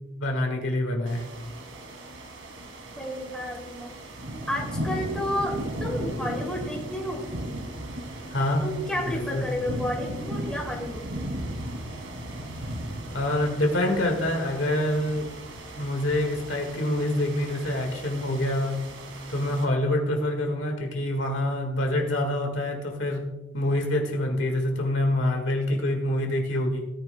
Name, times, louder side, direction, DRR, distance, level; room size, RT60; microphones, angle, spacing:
voice 1, 0.2-1.2 8.3-8.7 9.1-9.4 13.1-15.3 15.7-18.8 19.3-26.9, left 1 dB, 65° left, 3 dB, 1.8 m, -26 dB
sound 1, 1.1-19.6, right 1 dB, 75° right, 2.4 m, -36 dB
voice 2, 3.0-3.9 4.5-7.3 8.6-11.1, left 1 dB, 5° left, -2 dB, 2.8 m, -31 dB
17.5 x 9.9 x 2.3 m, 1.1 s
head